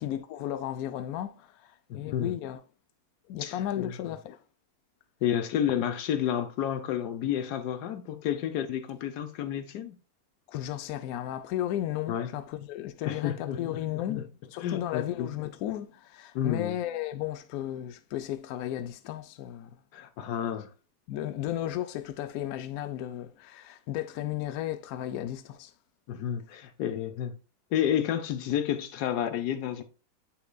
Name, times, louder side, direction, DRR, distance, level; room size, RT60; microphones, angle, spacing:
voice 1, 0.0-2.6 3.3-4.4 10.5-19.7 21.1-25.7, left 12 dB, 80° left, 0.8 m, -34 dB
voice 2, 1.9-2.3 3.4-3.9 5.2-10.0 12.1-12.3 13.0-14.3 14.6-15.3 16.3-16.8 19.9-20.7 26.1-27.3 27.7-29.8, left 10 dB, 65° left, 1.2 m, -30 dB
8.0 x 5.8 x 2.2 m
omnidirectional pair, 2.2 m